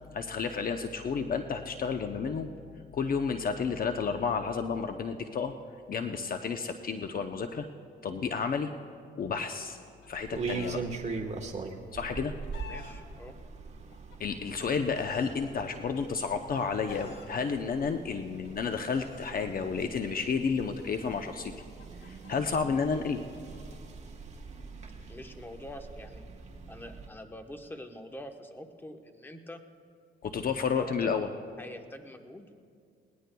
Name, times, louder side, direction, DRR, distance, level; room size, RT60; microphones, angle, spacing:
voice 1, 0.1-2.5 2.9-5.5 5.9-7.7 8.0-8.7 9.2-9.8 10.1-10.8 11.9-12.3 14.2-21.5 22.0-23.2 30.2-31.3, left 5 dB, 45° left, 7 dB, 0.7 m, -31 dB
Chicken rooster, 9.7-10.8 11.9-12.9 13.9-15.3 16.2-17.3 18.3-19.3 20.4-23.8, left 6 dB, 70° left, 2.0 m, -49 dB
sound 1, 10.1-27.1, right 4 dB, 35° right, 1.3 m, -42 dB
voice 2, 12.7-13.4 25.1-26.3 26.7-29.6 30.8-31.2 31.6-32.5, left 1 dB, 10° left, 5 dB, 1.0 m, -45 dB
20.5 x 19.0 x 2.3 m, 2.2 s
cardioid pair, 90°, 20 cm